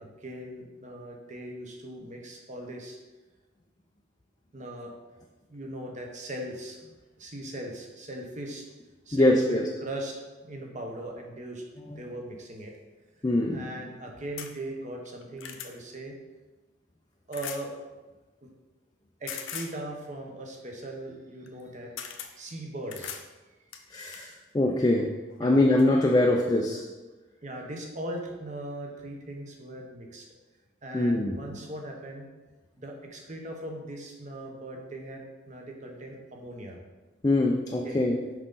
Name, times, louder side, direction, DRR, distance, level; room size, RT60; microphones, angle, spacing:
voice 1, 0.0-3.0 4.5-4.9 5.5-6.8 7.2-8.7 9.1-12.7 13.5-16.1 17.3-17.7 18.4-18.5 19.2-23.2 25.4-25.7 26.1-26.2 27.4-30.3 30.8-32.3 32.8-36.8 37.8-38.0, right 1 dB, 40° right, 1 dB, 1.0 m, -39 dB
voice 2, 9.1-9.7 11.9-12.0 13.2-13.6 23.9-25.1 25.4-26.8 30.9-31.3 37.2-38.2, left 1 dB, 20° left, 1 dB, 0.4 m, -23 dB
sound 1, 14.4-14.5 15.1-15.7 17.3-17.6 19.3-19.7 21.5-21.6 22.0-22.3 22.9-23.3 23.7-24.3 25.3-25.4 25.8-25.9, left 8 dB, 90° left, 0.6 m, -39 dB
6.0 x 5.2 x 3.8 m, 1.2 s
head